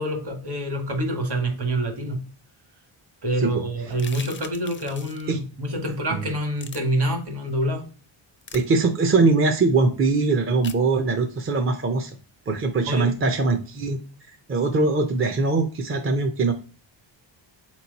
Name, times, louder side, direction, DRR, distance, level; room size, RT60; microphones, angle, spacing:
voice 1, 0.0-2.2 3.2-7.9 12.9-13.1, right 1 dB, 55° right, 5 dB, 1.5 m, -26 dB
sound 1, 3.9-5.3 6.6-6.8 8.4-8.6 10.6-10.8, left 6 dB, 25° left, 0.4 m, -40 dB
voice 2, 8.5-12.1 12.5-14.0 14.3-16.5, right 3 dB, 30° right, 4 dB, 0.5 m, -22 dB
3.9 x 3.1 x 3.9 m, 0.38 s
cardioid pair, 120°, 47 cm